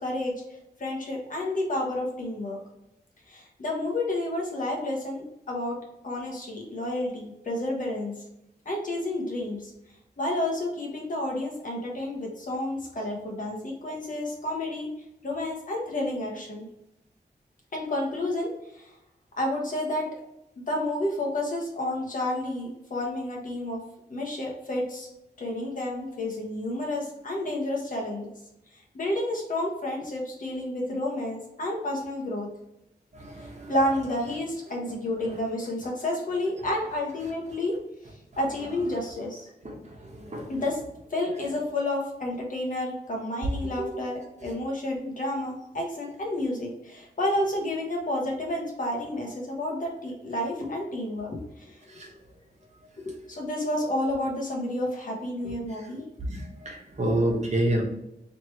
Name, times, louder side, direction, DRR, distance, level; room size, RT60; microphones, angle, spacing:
voice 1, 0.0-0.3 0.8-2.6 3.3-5.8 6.0-8.1 8.6-9.7 10.2-14.9 15.2-16.7 17.7-18.9 19.4-20.1 20.6-23.8 24.1-25.1 25.4-28.3 28.7-32.5 33.4-37.7 38.4-39.5 40.5-40.8 41.1-52.0 53.0-56.0, left 1 dB, 55° left, -2 dB, 1.2 m, -30 dB
voice 2, 33.2-33.7 39.6-39.7 40.3-40.5 56.2-56.4 56.6-57.8, right 1 dB, 45° right, -1 dB, 1.1 m, -27 dB
3.2 x 3.0 x 4.4 m, 0.84 s
wide cardioid pair, 110°, 16 cm